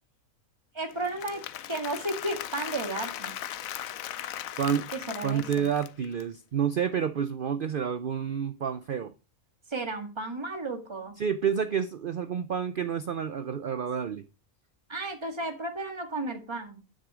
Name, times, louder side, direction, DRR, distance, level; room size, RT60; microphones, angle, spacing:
voice 1, 0.7-1.4 1.7-3.3 5.1-5.7 9.7-11.2 14.9-16.8, right 2 dB, 20° right, 1.8 m, -33 dB
Applause / Crowd, 0.9-6.2, left 11 dB, 80° left, 1.1 m, -38 dB
voice 2, 4.6-4.9 5.2-9.1 11.2-14.2, right 8 dB, 50° right, 0.7 m, -29 dB
10.5 x 6.5 x 5.0 m
omnidirectional pair, 1.4 m